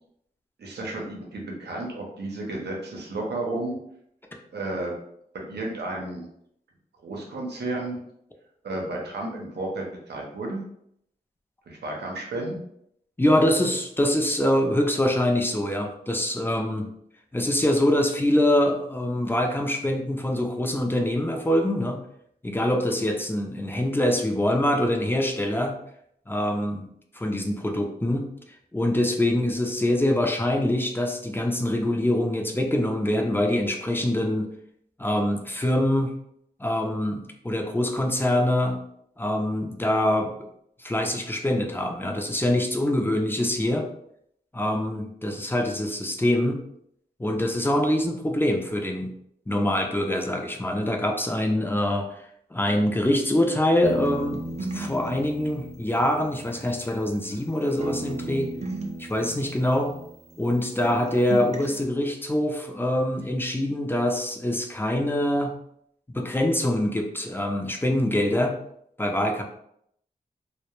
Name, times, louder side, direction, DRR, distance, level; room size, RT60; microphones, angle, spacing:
voice 1, 0.6-3.8 4.5-4.9 5.3-6.3 7.0-8.0 8.6-10.6 11.7-12.6, right 2 dB, 90° right, 0 dB, 0.6 m, -32 dB
voice 2, 13.2-16.9 17.3-22.0 22.4-25.8 26.3-26.9 27.1-28.3 28.7-34.5 35.0-36.1 36.6-38.8 39.2-40.3 40.8-43.9 44.5-46.6 47.2-49.1 49.5-52.2 52.5-54.4 54.7-58.5 59.0-59.9 60.4-65.5 66.1-68.6 69.0-69.4, left 1 dB, 15° left, 2 dB, 0.5 m, -24 dB
sound 1, 53.8-57.5 57.8-60.6 60.8-61.8, right 2 dB, 40° right, 0.5 m, -36 dB
2.2 x 2.1 x 3.0 m, 0.72 s
cardioid pair, 50°, 17 cm